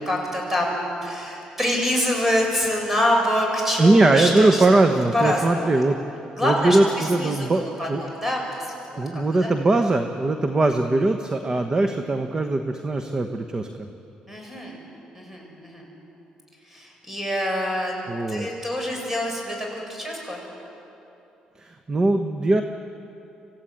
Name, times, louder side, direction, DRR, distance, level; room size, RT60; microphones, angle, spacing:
voice 1, 0.1-4.6 5.1-5.7 6.4-9.5 14.3-14.8 15.1-15.9 16.6-17.9 18.3-20.4, left 1 dB, 10° right, 0 dB, 7.5 m, -26 dB
voice 2, 3.8-8.0 9.0-13.9 18.1-18.5 21.6-22.6, right 2 dB, 30° right, 6 dB, 1.2 m, -21 dB
26.5 x 16.0 x 9.3 m, 2.9 s
cardioid pair, 90°, 2 cm